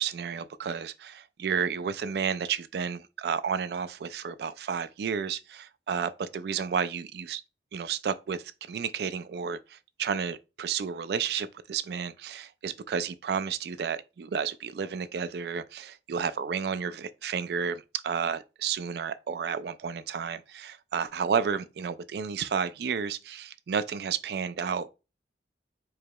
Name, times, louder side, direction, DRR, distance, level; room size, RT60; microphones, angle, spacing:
voice 1, 0.0-7.4 7.7-24.9, right 6 dB, 60° right, 0.3 m, -31 dB
4.6 x 2.9 x 2.2 m
head